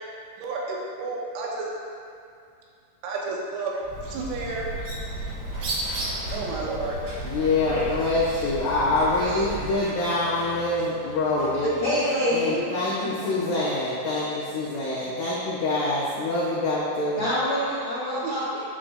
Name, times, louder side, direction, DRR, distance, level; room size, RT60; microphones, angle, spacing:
voice 1, 0.4-1.7 3.0-3.7 4.1-4.7 6.3-7.0 7.7-7.8 9.2-9.5 18.0-18.6, right 3 dB, 90° right, -3 dB, 3.7 m, -31 dB
Bird, 3.8-9.8, right 2 dB, 70° right, 4.0 m, -33 dB
sound 1, 5.0-12.6, equal, 50° right, 2.5 m, -42 dB
voice 2, 7.2-11.8 12.3-17.2, left 2 dB, 80° left, -9 dB, 1.9 m, -25 dB
voice 3, 11.8-12.6 13.4-13.5 17.2-18.6, equal, 55° left, -12 dB, 1.9 m, -26 dB
11.0 x 7.6 x 2.3 m, 2.4 s
omnidirectional pair, 5.9 m